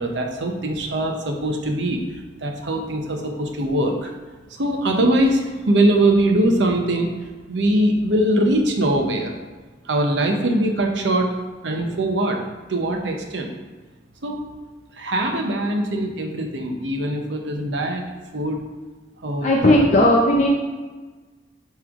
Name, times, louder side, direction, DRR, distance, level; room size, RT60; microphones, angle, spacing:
voice 1, 0.0-4.1 4.5-9.3 9.8-11.3 11.6-12.4 12.7-13.5 14.2-14.4 14.9-18.0 18.3-18.7 19.2-19.9, right 1 dB, 75° right, 2 dB, 0.8 m, -22 dB
voice 2, 19.4-20.5, left 1 dB, 40° left, -2 dB, 0.6 m, -16 dB
8.8 x 3.2 x 3.6 m, 1.3 s
head